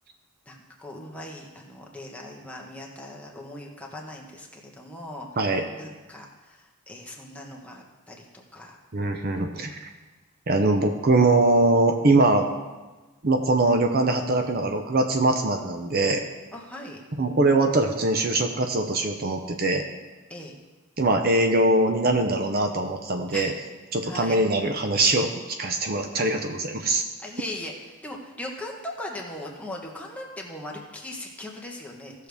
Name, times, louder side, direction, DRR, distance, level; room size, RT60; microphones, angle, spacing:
voice 1, 0.5-8.8 16.5-17.0 20.3-20.5 23.3-23.5 24.0-24.4 27.2-32.3, left 1 dB, 5° left, -1 dB, 1.2 m, -39 dB
voice 2, 8.9-9.8 10.5-12.5 13.2-16.2 17.2-19.8 21.0-23.5 23.9-27.0, right 2 dB, 45° right, 5 dB, 0.7 m, -22 dB
16.5 x 6.5 x 3.5 m, 1.2 s
head